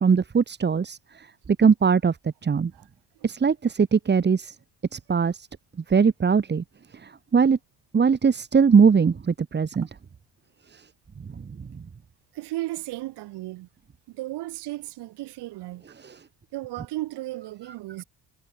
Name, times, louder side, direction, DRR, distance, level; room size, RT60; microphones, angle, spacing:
voice 1, 0.0-1.0 1.6-2.1 2.4-2.7 3.2-4.5 4.9-5.5 5.9-6.6 7.3-7.6 7.9-9.9 10.7-10.8 16.0-16.1, right 6 dB, 25° right, 1.1 m, -20 dB
voice 2, 12.3-13.7 14.1-15.8 16.5-18.0, right 17 dB, 85° right, 5.6 m, -35 dB
cardioid pair, 80°, 39 cm